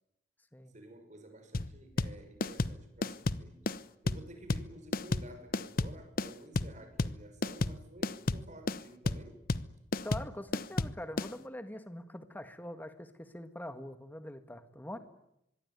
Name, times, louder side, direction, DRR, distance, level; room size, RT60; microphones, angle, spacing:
voice 1, 0.7-3.7 4.0-9.4 14.9-15.0, right 1 dB, 45° right, 6.2 m, -52 dB
sound 1, 1.5-11.3, left 2 dB, 55° left, 0.9 m, -32 dB
voice 2, 10.0-15.0, left 1 dB, 10° left, 1.8 m, -44 dB
25.0 x 22.0 x 9.6 m
head